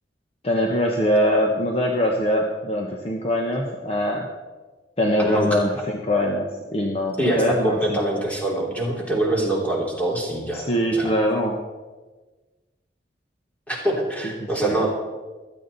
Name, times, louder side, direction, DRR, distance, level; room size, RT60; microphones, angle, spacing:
voice 1, 0.4-4.3 5.0-8.0 10.5-11.6 14.6-14.9, equal, 35° left, 0 dB, 1.2 m, -23 dB
voice 2, 5.2-5.5 7.2-11.1 13.7-14.9, right 1 dB, 10° left, -2 dB, 3.1 m, -24 dB
16.0 x 12.5 x 4.1 m, 1.3 s
head